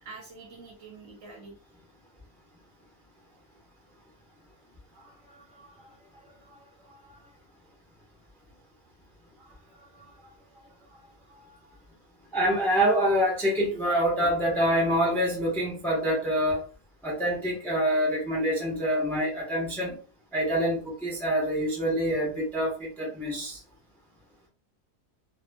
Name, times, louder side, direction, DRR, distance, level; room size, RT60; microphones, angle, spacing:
voice 1, 0.0-1.6 4.9-7.4 9.4-11.9, right 3 dB, 60° right, 1.1 m, -51 dB
voice 2, 12.3-16.6 17.0-20.0 20.3-23.6, equal, ahead, 0.7 m, -26 dB
2.9 x 2.4 x 2.2 m
omnidirectional pair, 1.7 m